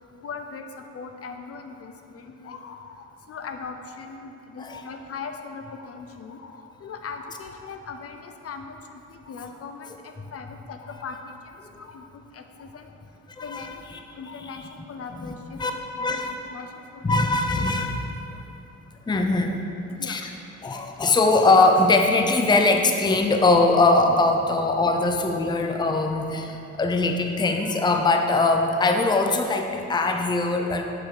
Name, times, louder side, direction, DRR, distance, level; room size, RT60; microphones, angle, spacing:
voice 1, 0.2-0.7 0.9-3.0 3.3-11.3 11.8-12.9 13.4-13.8 14.2-17.2 19.9-20.3, left 5 dB, 50° left, 6 dB, 0.7 m, -39 dB
voice 2, 13.4-13.7 14.4-14.5 15.2-15.7 16.0-16.3 17.0-18.1 19.1-19.6 20.0-20.3 20.6-30.8, left 3 dB, 15° left, 4 dB, 0.6 m, -21 dB
7.1 x 5.9 x 6.5 m, 2.7 s
cardioid pair, 90°, 30 cm